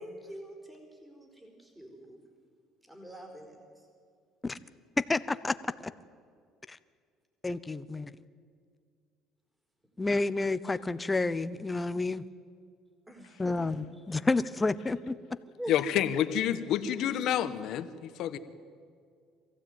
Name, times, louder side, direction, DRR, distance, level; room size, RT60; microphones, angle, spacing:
voice 1, 0.0-2.2 2.8-3.9 13.1-13.6 15.6-16.0, equal, 10° right, 4.5 m, -44 dB
voice 2, 5.0-5.9 6.7-6.8 7.4-8.1 10.0-12.3 13.4-15.2, left 3 dB, 15° left, 0.8 m, -30 dB
voice 3, 15.7-18.4, left 10 dB, 65° left, 1.3 m, -29 dB
23.0 x 15.5 x 9.3 m
cardioid pair, 100°, 0 cm